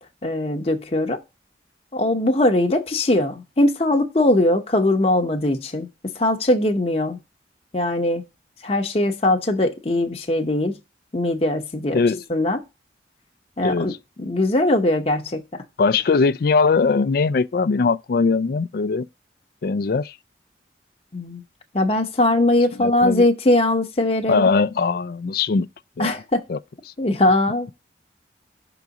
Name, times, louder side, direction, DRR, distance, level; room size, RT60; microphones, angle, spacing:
voice 1, 0.2-1.2 1.9-5.9 6.2-7.2 7.7-8.2 8.6-10.8 11.1-12.0 12.3-12.6 13.6-13.9 14.2-15.4 21.1-21.4 21.7-24.5 26.0-26.4 27.0-27.7, left 1 dB, 35° left, 0.8 m, -20 dB
voice 2, 11.9-12.2 13.6-14.0 15.8-19.1 19.6-20.1 22.8-23.2 24.3-25.7 26.0-26.1 26.5-26.6, left 4 dB, 55° left, 0.4 m, -20 dB
6.1 x 3.9 x 4.7 m
head